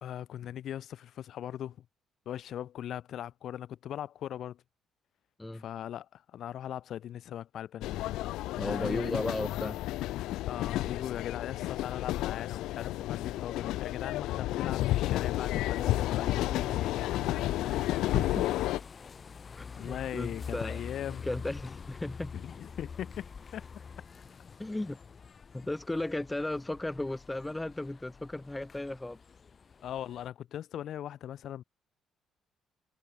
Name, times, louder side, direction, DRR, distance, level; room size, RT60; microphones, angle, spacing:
voice 1, 0.0-1.8 2.2-4.6 5.5-7.9 8.6-9.3 10.5-17.0 19.7-21.3 22.3-23.2 23.5-23.6 29.8-31.6, left 11 dB, 65° left, 1.3 m, -39 dB
sound 1, 7.8-18.8, left 16 dB, 90° left, 0.8 m, -31 dB
voice 2, 8.6-9.8 17.7-18.5 19.5-20.8 21.2-22.3 24.6-25.0 25.5-29.2, left 1 dB, 10° left, 0.7 m, -35 dB
sound 2, 14.8-30.3, left 5 dB, 35° left, 1.3 m, -46 dB
cardioid pair, 120°, 0 cm